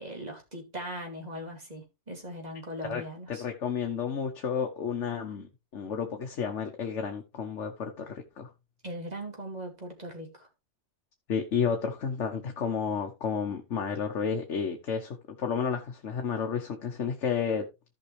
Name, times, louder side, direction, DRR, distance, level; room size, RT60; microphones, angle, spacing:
voice 1, 0.0-3.4 8.8-10.5, equal, 35° right, 2.8 m, -39 dB
voice 2, 3.3-8.5 11.3-17.6, left 6 dB, 80° left, 1.4 m, -31 dB
14.5 x 5.6 x 3.2 m
omnidirectional pair, 1.2 m